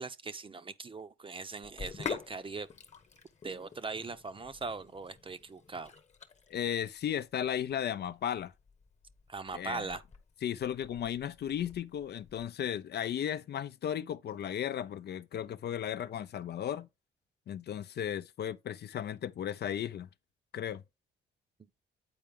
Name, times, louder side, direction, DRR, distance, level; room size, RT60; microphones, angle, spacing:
voice 1, 0.0-2.7 3.4-5.9 9.3-10.0, right 4 dB, 25° right, 0.7 m, -40 dB
Sink (filling or washing), 1.6-12.5, left 6 dB, 35° left, 1.2 m, -47 dB
voice 2, 6.5-8.5 9.5-9.9 10.4-16.9 17.5-20.1 20.5-20.8, left 10 dB, 55° left, 0.6 m, -35 dB
8.7 x 4.5 x 3.6 m
cardioid pair, 90°, 20 cm